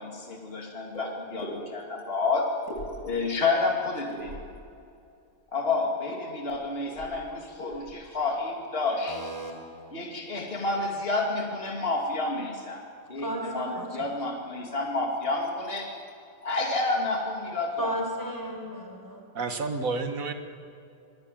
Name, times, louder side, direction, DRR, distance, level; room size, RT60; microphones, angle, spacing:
voice 1, 0.0-2.5 3.0-4.4 5.5-9.2 9.9-12.8 13.1-13.3 13.5-15.9 16.4-17.9, left 3 dB, 45° left, 0 dB, 2.7 m, -29 dB
sound 1, 0.9-1.1 1.4-1.5 2.7-3.3 4.1-4.6 6.1-6.2 6.5-6.6 6.8-7.2 7.6-7.9, equal, 80° left, 8.5 m, -40 dB
voice 2, 9.1-9.5 13.2-14.1 17.8-19.2, equal, 15° left, 1 dB, 5.3 m, -34 dB
voice 3, 19.3-20.3, right 4 dB, 90° right, 7 dB, 2.0 m, -30 dB
25.5 x 22.0 x 9.1 m, 2.5 s
omnidirectional pair, 1.4 m